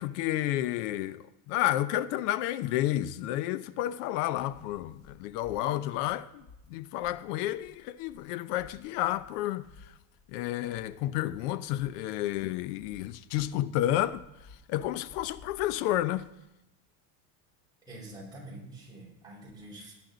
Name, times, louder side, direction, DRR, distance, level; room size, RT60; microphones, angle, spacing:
voice 1, 0.0-9.9 10.3-14.2 14.7-16.3, left 14 dB, 75° left, 0.8 m, -31 dB
sound 1, 4.1-16.4, left 3 dB, 20° left, 3.0 m, -57 dB
voice 2, 17.8-19.9, right 1 dB, 10° right, 4.3 m, -46 dB
18.0 x 9.8 x 3.9 m
cardioid pair, 160°, 47 cm